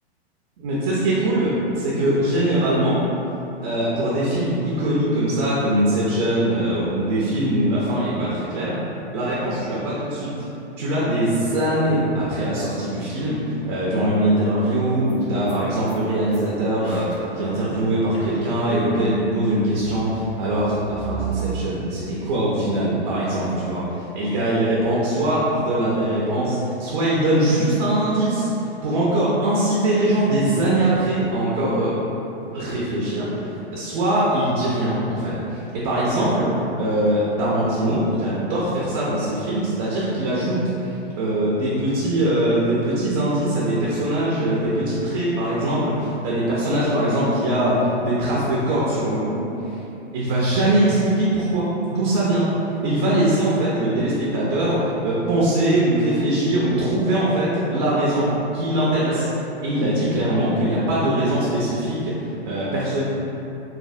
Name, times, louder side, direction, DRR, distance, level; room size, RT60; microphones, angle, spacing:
voice 1, 0.6-3.0 3.6-8.8 9.1-10.3 10.8-32.0 32.5-49.5 50.1-52.5 52.8-63.0, right 1 dB, 35° right, -7 dB, 0.5 m, -22 dB
sound 1, 15.1-15.2 15.5-15.6 15.9-21.7, right 4 dB, 55° left, 0.5 m, -36 dB
3.1 x 2.1 x 2.6 m, 2.9 s
hypercardioid pair, 130°, 33 cm